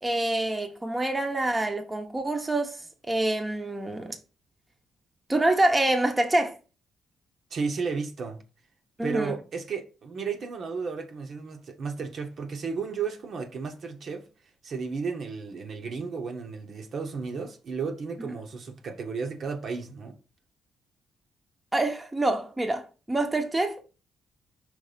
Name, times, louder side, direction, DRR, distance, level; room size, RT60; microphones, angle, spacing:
voice 1, 0.0-4.2 5.3-6.6 9.0-9.3 21.7-23.8, right 1 dB, 15° right, 1.0 m, -26 dB
voice 2, 7.5-8.4 9.0-14.3 14.6-20.2, right 5 dB, 55° right, 1.1 m, -33 dB
5.4 x 3.4 x 5.1 m
cardioid pair, 90°, 0 cm